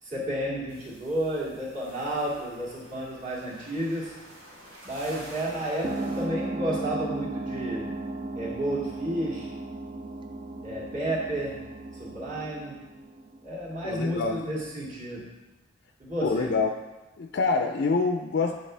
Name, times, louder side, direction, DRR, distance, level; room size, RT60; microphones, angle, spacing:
voice 1, 0.0-4.1 4.8-8.0 8.4-9.5 10.6-11.6 12.0-12.8 13.4-15.3 16.0-16.6, right 1 dB, 40° right, -7 dB, 2.2 m, -31 dB
sound 1, 0.7-6.2, equal, 75° right, 2.1 m, -49 dB
sound 2, 5.8-14.0, right 2 dB, 25° right, 0.4 m, -36 dB
voice 2, 13.8-14.4 16.2-16.7 17.2-18.6, left 4 dB, 55° left, 4 dB, 0.4 m, -26 dB
9.0 x 4.8 x 3.3 m, 1.1 s
head